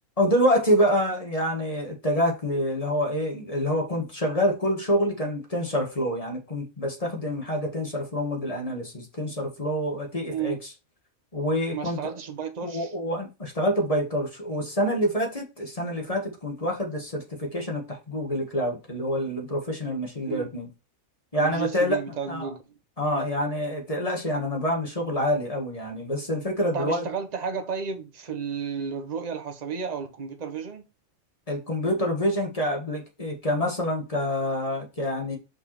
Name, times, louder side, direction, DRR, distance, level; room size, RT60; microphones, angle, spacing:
voice 1, 0.2-10.5 11.3-12.1 12.6-20.7 21.3-22.5 23.0-27.0 31.5-35.4, equal, 25° left, 1.6 m, -27 dB
voice 2, 11.7-12.9 20.3-20.5 21.3-22.6 26.7-30.8, right 6 dB, 35° right, 1.0 m, -32 dB
5.4 x 4.7 x 4.3 m
omnidirectional pair, 1.5 m